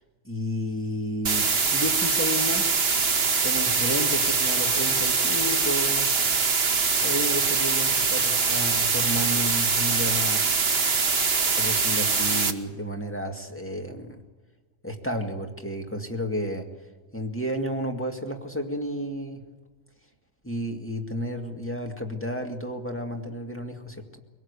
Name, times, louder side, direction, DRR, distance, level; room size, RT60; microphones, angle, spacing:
voice 1, 0.2-2.7 3.4-6.1 7.0-10.7 11.6-14.2 14.8-16.7 17.1-19.4 20.4-24.2, equal, 10° left, 3 dB, 2.1 m, -32 dB
sound 1, 1.3-12.5, right 4 dB, 50° right, 1.6 m, -23 dB
24.5 x 18.5 x 8.3 m, 1.3 s
omnidirectional pair, 1.3 m